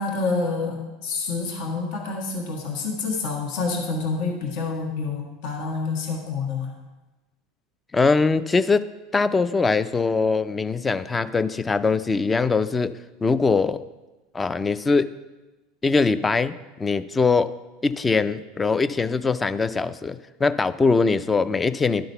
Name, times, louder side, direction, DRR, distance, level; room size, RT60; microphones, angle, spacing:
voice 1, 0.0-6.7, left 4 dB, 65° left, 0 dB, 1.4 m, -28 dB
voice 2, 7.9-8.8 9.1-12.9 13.2-13.8 14.3-15.1 15.8-17.5 17.8-22.0, left 4 dB, 20° left, 14 dB, 0.4 m, -22 dB
11.0 x 3.9 x 5.6 m, 1.1 s
hypercardioid pair, 95°, 0 cm